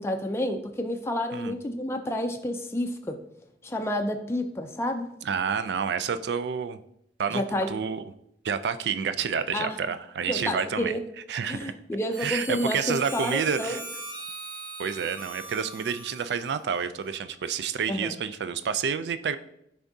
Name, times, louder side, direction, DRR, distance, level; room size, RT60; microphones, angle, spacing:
voice 1, 0.0-3.2 3.6-5.1 7.3-7.7 9.5-9.8 10.3-11.0 11.5-13.8 17.9-18.2, left 1 dB, 15° left, 4 dB, 0.4 m, -30 dB
voice 2, 5.2-6.8 7.2-8.0 8.4-10.9 11.3-11.7 12.2-13.8 14.8-19.4, right 6 dB, 70° right, 12 dB, 0.4 m, -29 dB
Harmonica, 12.1-17.3, right 2 dB, 30° right, 2.1 m, -40 dB
10.0 x 3.5 x 2.7 m, 0.76 s
head